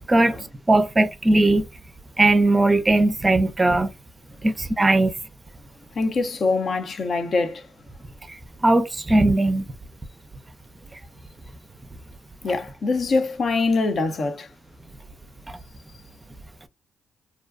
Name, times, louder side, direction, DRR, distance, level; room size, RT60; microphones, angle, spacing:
voice 1, 0.7-1.7 2.2-3.9 4.4-5.1 8.3-8.4 8.6-9.7, right 2 dB, 25° right, 0.4 m, -19 dB
voice 2, 5.9-7.7 12.4-14.5, left 3 dB, 55° left, 0.6 m, -24 dB
2.5 x 2.2 x 2.4 m
supercardioid pair, 60°, 0 cm